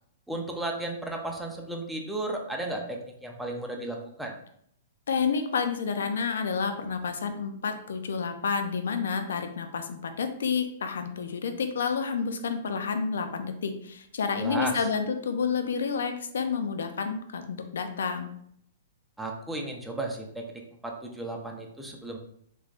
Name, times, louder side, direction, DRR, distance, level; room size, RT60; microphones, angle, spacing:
voice 1, 0.3-4.4 14.4-14.9 19.2-22.2, right 2 dB, 5° right, 1 dB, 0.5 m, -34 dB
voice 2, 5.1-18.3, left 5 dB, 85° left, 7 dB, 0.5 m, -30 dB
3.5 x 3.1 x 2.5 m, 0.68 s
hypercardioid pair, 150°, 0 cm